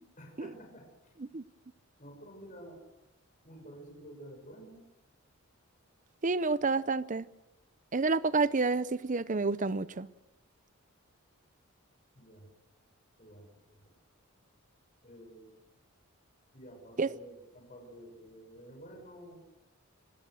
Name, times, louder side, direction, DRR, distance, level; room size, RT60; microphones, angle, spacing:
voice 1, 0.2-1.1 2.0-2.8 3.4-4.9 12.1-12.5 13.2-13.8 15.0-15.6 16.5-19.4, right 1 dB, 35° left, 7.0 m, -51 dB
voice 2, 6.2-7.3 7.9-10.1 17.0-17.1, right 3 dB, 35° right, 0.6 m, -29 dB
26.0 x 18.0 x 6.4 m
head